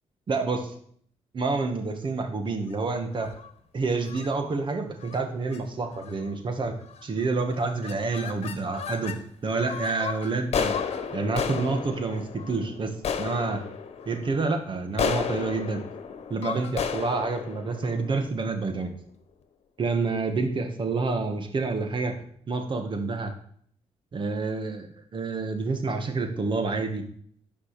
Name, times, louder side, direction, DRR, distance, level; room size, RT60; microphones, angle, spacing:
voice 1, 0.3-0.7 1.3-3.3 3.7-6.7 7.0-9.2 9.4-10.7 11.1-13.6 14.1-15.8 16.3-18.9 19.8-22.2 22.5-23.3 24.1-27.0, right 3 dB, 45° right, 6 dB, 1.7 m, -28 dB
sound 1, 3.1-3.5 4.1-4.3 5.0-5.2 5.5-5.6 5.9-6.3 6.9-7.2 7.5-9.2 9.6-18.8, left 7 dB, 65° left, 1.3 m, -33 dB
13.0 x 5.5 x 6.8 m, 0.62 s
cardioid pair, 100°, 12 cm